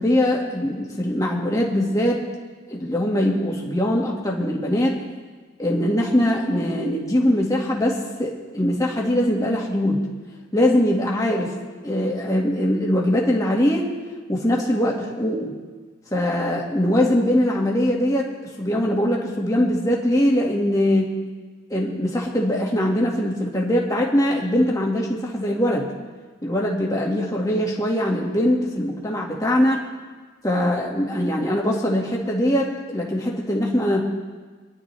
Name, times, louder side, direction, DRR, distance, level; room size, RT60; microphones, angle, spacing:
voice 1, 0.0-2.2 2.7-5.0 5.6-10.1 10.5-11.5 11.8-13.9 14.3-15.5 16.1-18.3 18.6-21.1 21.7-25.9 26.4-29.8 30.4-34.0, left 1 dB, 15° left, -2 dB, 2.0 m, -22 dB
25.0 x 11.5 x 3.4 m, 1.4 s
head